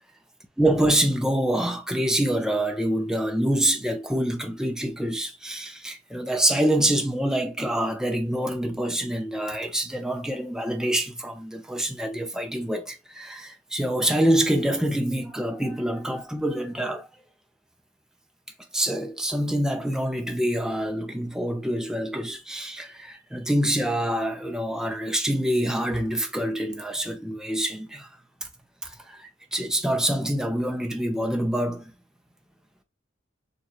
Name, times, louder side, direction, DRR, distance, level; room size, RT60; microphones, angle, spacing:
voice 1, 0.6-17.1 18.7-28.1 28.8-31.9, right 1 dB, 5° right, 0.5 m, -26 dB
6.6 x 2.4 x 2.9 m
head